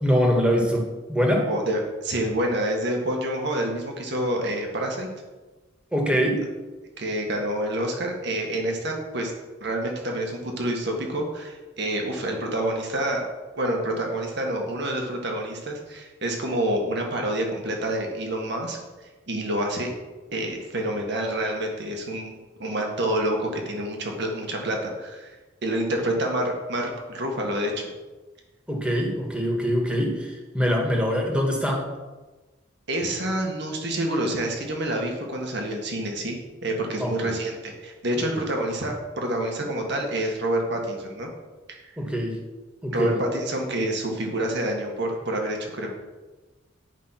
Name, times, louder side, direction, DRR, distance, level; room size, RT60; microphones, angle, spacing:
voice 1, 0.0-1.5 5.9-6.5 28.7-31.9 37.0-37.3 42.0-42.4 42.8-43.2, equal, 5° right, 0 dB, 1.7 m, -24 dB
voice 2, 1.5-5.1 7.0-9.3 9.6-13.2 13.6-18.8 19.3-19.9 20.3-25.3 25.6-27.9 32.9-41.3 41.7-42.0 42.9-45.9, right 1 dB, 60° right, 1 dB, 1.8 m, -28 dB
11.0 x 5.3 x 6.0 m, 1.2 s
head